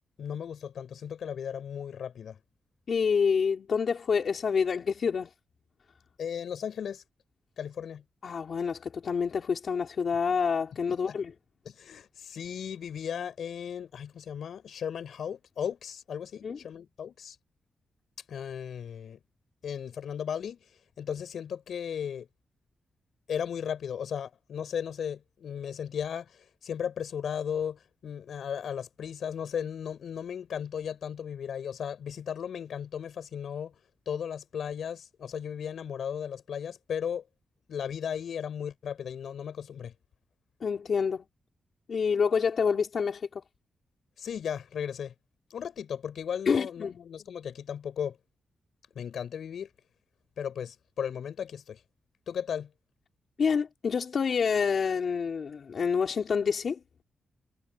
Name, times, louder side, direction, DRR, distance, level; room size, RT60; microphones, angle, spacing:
voice 1, 0.2-2.4 6.2-7.0 7.6-8.0 11.0-11.2 11.6-17.4 18.3-19.2 19.6-20.6 21.0-22.3 23.3-33.8 34.1-37.2 37.7-39.9 44.2-45.1 45.5-48.2 48.9-49.7 50.4-51.8 52.3-52.7, left 8 dB, 75° left, 6.4 m, -36 dB
voice 2, 2.9-5.3 8.2-11.3 16.4-16.6 40.6-41.2 41.9-43.4 46.5-47.0 53.4-56.8, left 6 dB, 50° left, 4.1 m, -27 dB
wide cardioid pair, 160°, 0 cm